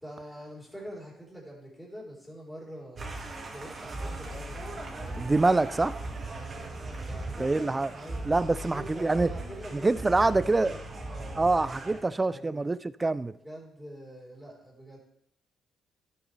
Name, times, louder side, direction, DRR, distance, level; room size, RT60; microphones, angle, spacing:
voice 1, 0.0-3.1 3.5-5.3 6.3-6.7 7.1-8.2 8.6-10.8 11.0-11.5 12.3-12.7 13.4-15.0, right 1 dB, 5° left, 3.7 m, -45 dB
sound 1, 3.0-12.0, right 2 dB, 35° right, 2.0 m, -38 dB
voice 2, 5.2-6.0 7.4-7.9 8.3-9.3 9.7-10.7 11.4-13.3, right 3 dB, 20° right, 0.3 m, -25 dB
11.5 x 7.9 x 3.3 m
cardioid pair, 90°, 0 cm